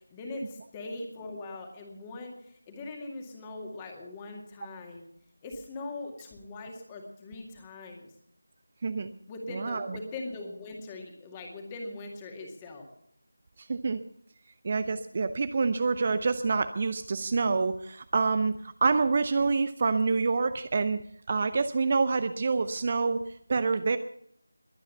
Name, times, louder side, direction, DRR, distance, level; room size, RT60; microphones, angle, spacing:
voice 1, 0.0-5.1 5.4-8.1 9.3-12.9, left 2 dB, 15° left, 2 dB, 2.1 m, -41 dB
voice 2, 9.5-10.0 13.6-14.0 14.6-21.0 21.3-24.0, right 4 dB, 30° right, 11 dB, 0.6 m, -27 dB
21.5 x 9.0 x 5.6 m, 0.69 s
figure-of-eight pair, 165°, 0 cm